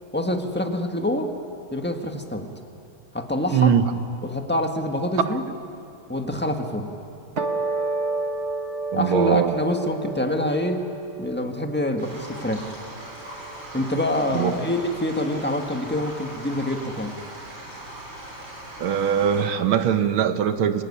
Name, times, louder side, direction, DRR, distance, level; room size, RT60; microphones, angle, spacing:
voice 1, 0.1-1.3 1.7-2.5 3.1-3.7 4.2-5.5 6.1-6.9 8.9-10.8 11.2-12.7 13.7-17.2, left 1 dB, 5° left, 4 dB, 1.3 m, -26 dB
voice 2, 3.5-3.9 5.3-5.4 8.9-9.6 14.3-14.5 18.8-20.8, right 8 dB, 70° right, 9 dB, 1.8 m, -21 dB
sound 1, 7.4-13.9, right 3 dB, 35° right, 1.5 m, -31 dB
sound 2, 12.0-19.4, right 1 dB, 90° right, 7.7 m, -40 dB
25.5 x 17.0 x 9.8 m, 2.7 s
omnidirectional pair, 2.4 m